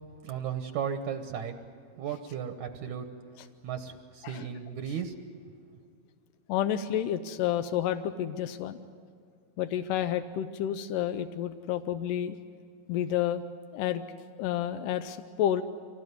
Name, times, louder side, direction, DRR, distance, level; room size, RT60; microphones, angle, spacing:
voice 1, 0.2-1.5 2.0-3.1 3.6-5.2, right 8 dB, 65° right, 7 dB, 2.0 m, -35 dB
voice 2, 6.5-8.8 9.6-12.4 12.9-13.4 13.7-14.0 14.4-15.6, left 10 dB, 80° left, 9 dB, 2.0 m, -30 dB
25.0 x 18.5 x 9.5 m, 2.3 s
omnidirectional pair, 4.6 m